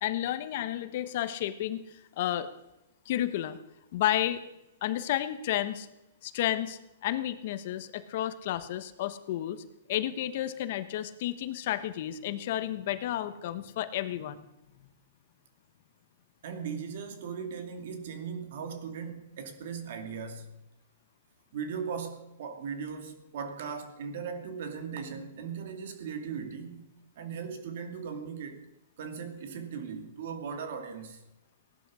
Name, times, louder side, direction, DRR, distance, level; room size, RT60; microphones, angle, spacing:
voice 1, 0.0-2.5 3.0-3.6 3.9-4.4 4.8-5.9 6.2-9.6 9.9-14.5, left 12 dB, 50° left, 1.2 m, -31 dB
voice 2, 16.4-20.5 21.5-26.9 27.2-28.7 29.0-31.2, right 6 dB, 60° right, 2.6 m, -38 dB
17.5 x 11.5 x 6.4 m
hypercardioid pair, 160°, 0 cm